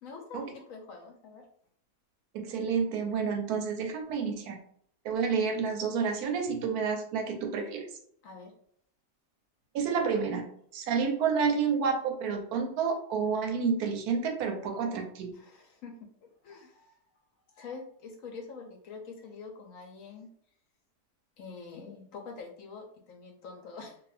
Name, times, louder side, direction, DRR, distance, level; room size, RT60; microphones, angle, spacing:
voice 1, 0.0-1.5 8.2-8.5 15.3-16.0 16.4-17.2 17.5-20.3 21.4-24.0, left 4 dB, 65° left, 3 dB, 0.8 m, -45 dB
voice 2, 2.3-4.6 5.0-7.8 9.7-10.4 10.7-15.3, right 5 dB, 75° right, 4 dB, 1.0 m, -29 dB
2.6 x 2.4 x 3.2 m, 0.64 s
omnidirectional pair, 1.7 m